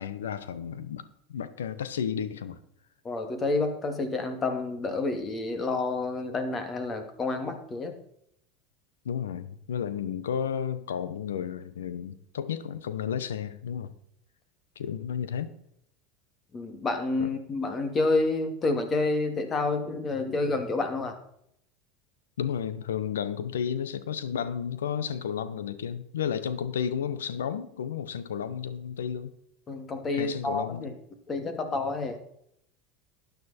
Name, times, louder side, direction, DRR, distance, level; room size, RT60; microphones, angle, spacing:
voice 1, 0.0-2.6 9.0-13.9 14.8-15.5 17.2-17.3 22.4-29.3 30.1-30.9, left 8 dB, 90° left, 0.9 m, -32 dB
voice 2, 3.0-7.9 16.5-21.1 29.7-30.9 31.3-32.2, left 3 dB, 30° left, 2.5 m, -29 dB
12.5 x 9.3 x 4.4 m
hypercardioid pair, 95°, 0 cm